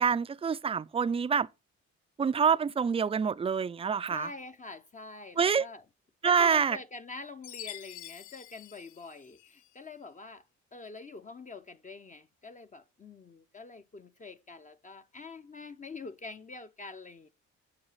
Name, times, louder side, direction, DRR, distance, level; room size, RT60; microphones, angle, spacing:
voice 1, 0.0-1.5 2.2-4.3 5.4-5.6 6.2-6.8, right 6 dB, 20° right, 0.3 m, -26 dB
voice 2, 4.1-5.8 6.2-10.4 10.7-17.3, left 3 dB, 25° left, 0.6 m, -45 dB
Chime, 7.4-9.8, left 13 dB, 85° left, 0.6 m, -47 dB
8.8 x 4.8 x 5.5 m
cardioid pair, 90°, 30 cm